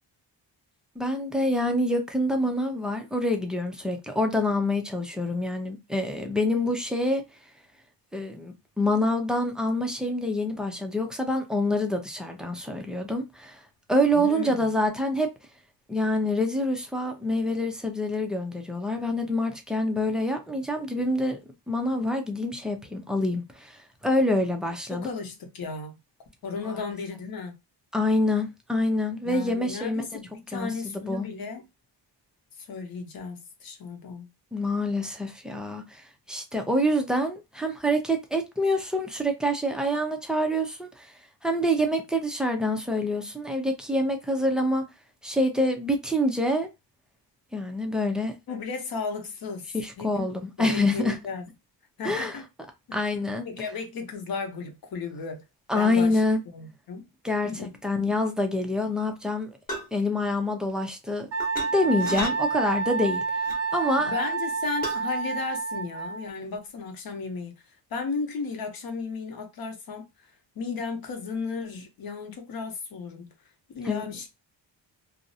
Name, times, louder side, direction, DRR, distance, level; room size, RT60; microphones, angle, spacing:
voice 1, 1.0-7.2 8.1-13.6 13.9-15.3 15.9-21.4 21.7-25.1 27.9-30.1 30.5-31.2 34.5-41.1 41.4-44.9 45.2-46.7 47.5-48.3 49.7-51.2 52.0-52.4 52.9-53.4 55.7-56.4 57.2-59.5 59.9-61.3 61.7-63.2 63.7-64.1 73.9-74.0, left 1 dB, ahead, 0.3 m, -26 dB
voice 2, 14.1-14.7 24.9-26.0 26.4-27.6 29.2-31.6 32.6-34.3 48.5-50.2 50.6-51.5 52.0-52.5 52.9-53.0 53.5-55.4 55.7-56.2 56.5-57.0 57.4-57.7 64.0-70.3 70.6-73.3 73.7-74.3, left 4 dB, 50° left, 0.8 m, -35 dB
sound 1, 59.7-60.0 61.4-61.7 62.0-62.3 63.4-63.6 64.8-65.0, equal, 20° left, 0.8 m, -33 dB
Wind instrument woodwind instrument, 61.3-66.3, right 4 dB, 35° right, 0.6 m, -29 dB
2.5 x 2.0 x 2.6 m
cardioid pair, 135°, 45 cm